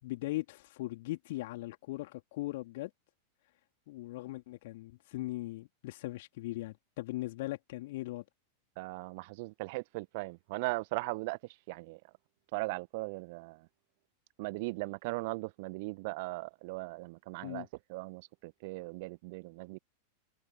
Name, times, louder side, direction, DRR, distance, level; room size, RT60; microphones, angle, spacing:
voice 1, 0.0-2.9 3.9-8.2 17.4-17.7, left 18 dB, 50° left, 3.7 m, -39 dB
voice 2, 8.8-11.4 11.7-12.0 12.5-13.7 14.4-19.8, right 25 dB, 50° right, 1.3 m, -38 dB
figure-of-eight pair, 90°, 0 cm